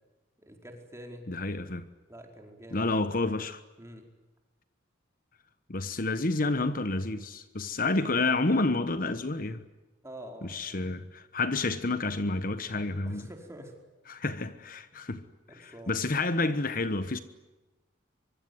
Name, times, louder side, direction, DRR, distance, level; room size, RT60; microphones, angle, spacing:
voice 1, 0.4-1.3 2.1-2.9 3.8-4.0 10.0-10.8 13.0-13.7 15.5-15.9, right 1 dB, 15° right, 4.7 m, -46 dB
voice 2, 1.3-1.9 2.7-3.6 5.7-9.6 10.4-13.2 14.1-15.2 15.6-17.2, left 3 dB, 45° left, 1.2 m, -29 dB
24.5 x 24.0 x 9.5 m
head